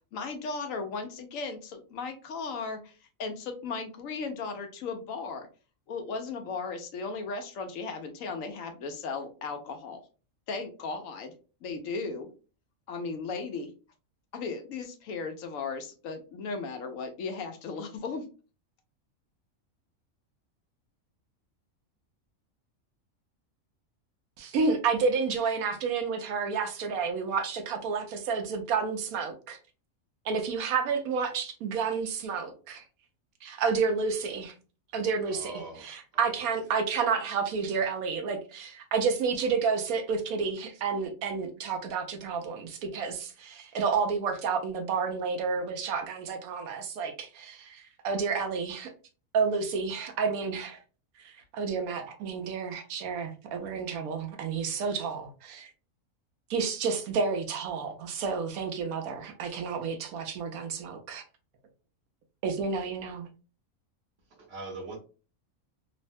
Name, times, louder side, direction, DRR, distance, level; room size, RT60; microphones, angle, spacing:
voice 1, 0.1-5.5 5.9-10.0 10.5-11.3 11.6-12.3 12.9-13.7 14.3-18.3, left 4 dB, 75° left, 1.0 m, -36 dB
voice 2, 24.4-29.6 30.2-32.8 33.4-34.5 34.9-48.9 49.3-50.8 51.2-55.7 56.5-61.2 62.4-63.3, right 5 dB, 85° right, 1.1 m, -30 dB
voice 3, 35.2-36.4 64.3-65.0, right 3 dB, 55° right, 1.0 m, -42 dB
3.1 x 2.1 x 2.5 m
omnidirectional pair, 1.5 m